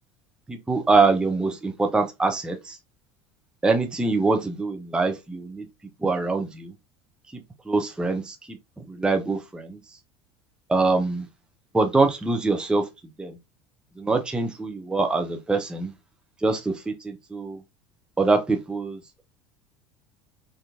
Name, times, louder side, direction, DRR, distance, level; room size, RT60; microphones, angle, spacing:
voice 1, 0.5-2.8 3.6-5.6 6.0-6.7 7.7-8.4 8.9-9.8 10.7-11.3 11.7-12.8 13.2-13.3 14.0-15.9 16.4-17.6 18.2-19.2, right 3 dB, 5° right, 0.5 m, -24 dB
4.3 x 2.5 x 2.6 m
figure-of-eight pair, 70°, 14 cm